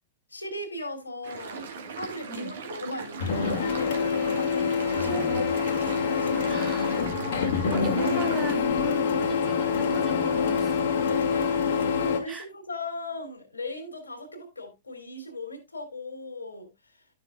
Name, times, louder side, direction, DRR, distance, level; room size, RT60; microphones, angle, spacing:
voice 1, 0.3-7.3 11.0-17.1, left 1 dB, 80° left, 2.6 m, -39 dB
sound 1, 1.2-8.6, right 5 dB, 60° right, 1.8 m, -39 dB
Printer, 3.2-12.2, left 6 dB, 55° left, 1.7 m, -26 dB
voice 2, 5.0-5.7 6.4-7.0 7.7-10.8 12.3-12.5, right 3 dB, 15° right, 2.0 m, -38 dB
12.0 x 6.4 x 2.3 m
figure-of-eight pair, 100°, 0 cm